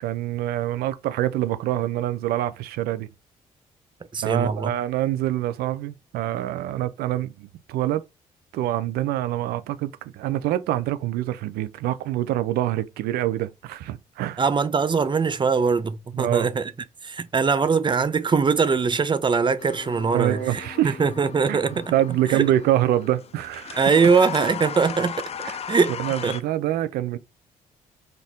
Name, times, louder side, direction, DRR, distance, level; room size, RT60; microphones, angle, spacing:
voice 1, 0.0-3.1 4.2-8.0 8.5-14.4 16.1-16.5 20.1-21.0 21.5-21.6 21.9-23.8 25.4-25.6 26.0-27.2, right 13 dB, 80° right, 0.4 m, -25 dB
voice 2, 4.1-4.7 14.4-16.7 17.0-21.9 22.3-22.4 23.8-25.3 25.7-25.9 26.2-26.4, right 5 dB, 30° right, 0.6 m, -22 dB
sound 1, 19.6-26.4, left 8 dB, 40° left, 0.5 m, -37 dB
4.4 x 2.6 x 3.6 m
supercardioid pair, 60°, 16 cm